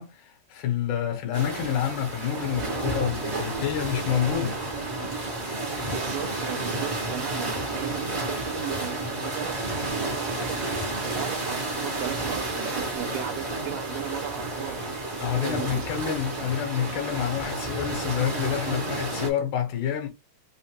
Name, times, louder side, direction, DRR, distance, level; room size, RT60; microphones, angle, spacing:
voice 1, 0.0-4.6 15.2-20.1, left 9 dB, 70° left, 2.2 m, -28 dB
sound 1, 1.3-19.3, right 2 dB, 50° right, 0.7 m, -31 dB
voice 2, 5.9-10.7 11.0-14.9 15.4-15.9, right 11 dB, 85° right, 2.2 m, -36 dB
5.7 x 2.0 x 2.8 m
omnidirectional pair, 4.0 m